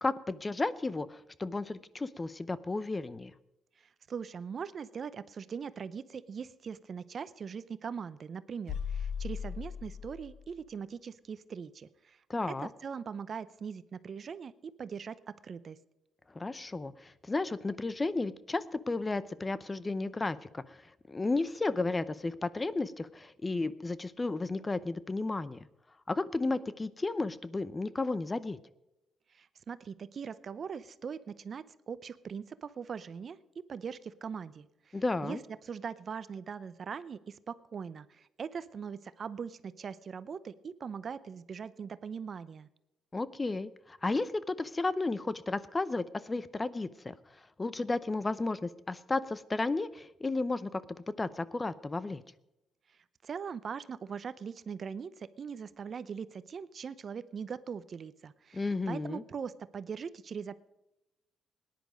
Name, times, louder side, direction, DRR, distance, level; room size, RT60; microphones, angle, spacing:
voice 1, 0.0-3.3 12.3-12.7 16.3-20.8 21.1-25.7 26.1-28.6 34.9-35.4 43.1-47.1 47.6-50.8 51.2-52.2 58.5-59.2, left 3 dB, 20° left, 17 dB, 0.6 m, -33 dB
voice 2, 4.1-12.2 12.5-12.6 12.8-15.8 29.3-33.4 33.7-35.4 35.6-42.7 53.2-60.7, right 6 dB, 50° right, 15 dB, 0.7 m, -41 dB
sound 1, 8.7-10.5, left 7 dB, 85° left, 1.7 m, -37 dB
18.0 x 10.5 x 5.2 m, 0.92 s
cardioid pair, 90°, 0 cm